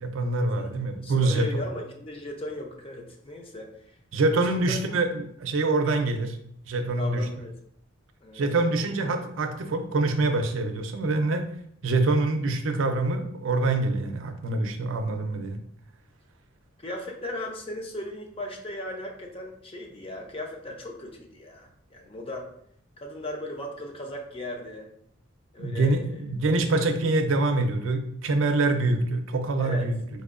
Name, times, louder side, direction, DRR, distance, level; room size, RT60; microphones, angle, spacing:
voice 1, 0.0-1.5 4.1-6.4 6.7-7.2 8.3-11.5 11.8-15.6 25.6-30.0, right 2 dB, 80° right, 6 dB, 0.5 m, -25 dB
voice 2, 0.9-4.0 4.3-4.8 7.0-7.5 8.2-8.4 8.8-8.9 16.8-22.5 23.0-24.9 25.5-26.2 29.6-29.9, left 1 dB, 30° left, 1 dB, 0.5 m, -37 dB
4.1 x 2.7 x 2.5 m, 0.68 s
head